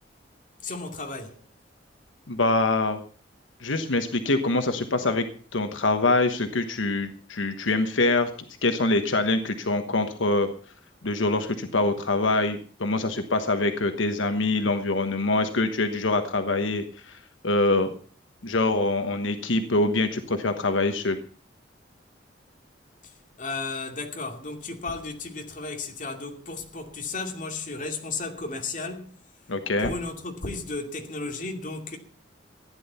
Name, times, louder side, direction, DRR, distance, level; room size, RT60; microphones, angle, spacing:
voice 1, 0.6-1.4 23.0-29.3 29.8-32.0, left 3 dB, 40° left, 2.5 m, -34 dB
voice 2, 2.3-3.0 3.6-5.3 5.5-8.3 8.6-10.5 11.0-17.2 17.4-17.9 18.4-21.2 29.5-29.9, left 2 dB, 85° left, 1.2 m, -24 dB
15.0 x 10.0 x 5.7 m
head